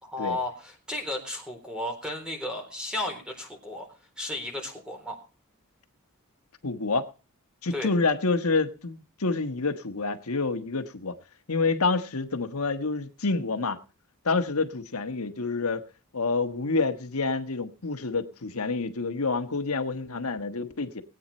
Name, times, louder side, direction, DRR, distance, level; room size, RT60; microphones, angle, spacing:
voice 1, 0.0-3.9 4.2-5.2 7.7-7.9, left 1 dB, 5° right, 3.9 m, -34 dB
voice 2, 6.6-7.1 7.6-11.1 11.5-13.8 14.2-15.8 16.1-21.0, left 3 dB, 75° left, 1.4 m, -28 dB
19.5 x 8.9 x 4.3 m
head